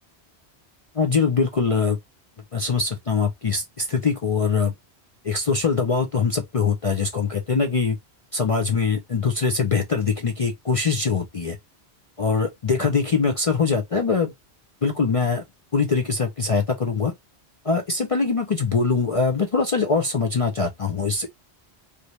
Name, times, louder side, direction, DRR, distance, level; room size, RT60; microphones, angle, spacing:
voice 1, 0.9-2.0 2.5-4.7 5.2-8.0 8.3-11.6 12.2-14.3 14.8-15.4 15.7-17.1 17.6-21.3, left 5 dB, 45° left, 0.4 m, -23 dB
3.1 x 2.5 x 3.0 m
omnidirectional pair, 1.1 m